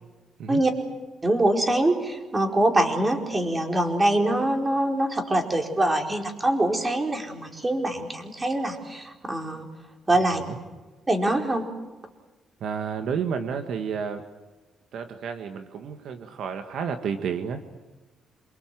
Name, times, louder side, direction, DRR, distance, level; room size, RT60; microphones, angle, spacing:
voice 1, 1.2-9.7 10.1-10.4 11.1-11.6, right 1 dB, 20° right, 3 dB, 4.6 m, -24 dB
voice 2, 12.6-14.2 14.9-17.6, right 6 dB, 70° right, 6 dB, 1.8 m, -31 dB
27.0 x 23.5 x 7.8 m, 1.2 s
cardioid pair, 90°, 0 cm